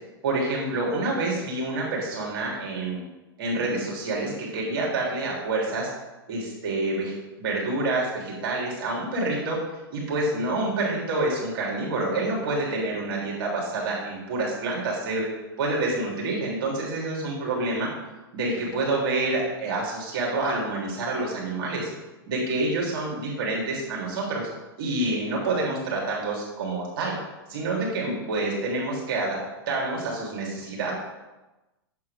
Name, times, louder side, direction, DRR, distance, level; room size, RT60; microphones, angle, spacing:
voice 1, 0.2-3.0 3.4-5.9 6.3-9.6 9.9-15.3 15.6-17.9 18.3-21.9 22.3-24.5 24.8-27.1 27.5-29.4 29.7-30.9, right 2 dB, 60° right, -3 dB, 3.4 m, -27 dB
8.3 x 8.0 x 3.6 m, 1.0 s
hypercardioid pair, 110°, 13 cm